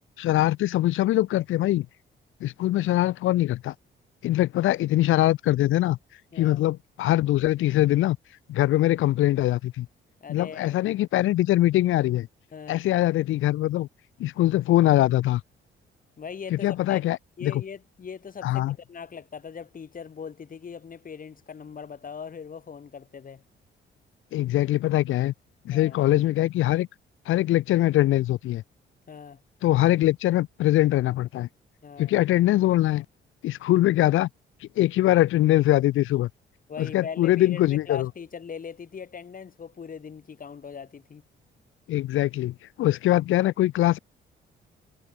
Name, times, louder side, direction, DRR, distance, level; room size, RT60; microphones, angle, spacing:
voice 1, 0.2-1.9 2.4-3.7 4.2-6.0 6.4-8.2 8.5-9.9 10.3-12.3 12.7-13.9 14.2-15.4 16.5-17.6 18.4-18.7 24.3-25.3 25.6-26.9 27.3-28.6 29.6-31.5 32.0-33.0 33.4-34.3 34.8-36.3 36.8-38.1 41.9-44.0, left 15 dB, 85° left, 2.6 m, -22 dB
voice 2, 10.2-10.8 12.5-12.8 16.2-17.0 17.4-23.4 25.7-26.0 29.1-29.4 31.8-32.1 36.7-41.2, left 6 dB, 45° left, 5.3 m, -40 dB
cardioid pair, 90°, 20 cm